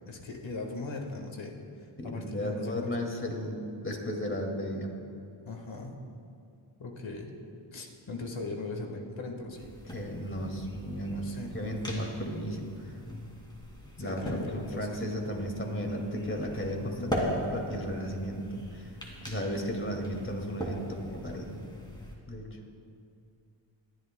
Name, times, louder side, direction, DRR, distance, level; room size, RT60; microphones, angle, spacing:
voice 1, 0.1-1.5 1.8-3.0 5.4-6.0 6.8-7.3 7.7-9.7 11.1-11.5 14.0-15.0 16.8-17.1, left 3 dB, 65° left, 2 dB, 1.5 m, -39 dB
voice 2, 2.0-4.9 9.9-12.9 14.0-18.9 19.2-21.6 22.3-22.5, equal, 25° left, 1 dB, 2.1 m, -34 dB
sound 1, 9.5-22.2, equal, 10° left, 2.3 m, -40 dB
20.0 x 11.0 x 2.2 m, 2.5 s
cardioid pair, 55°, 49 cm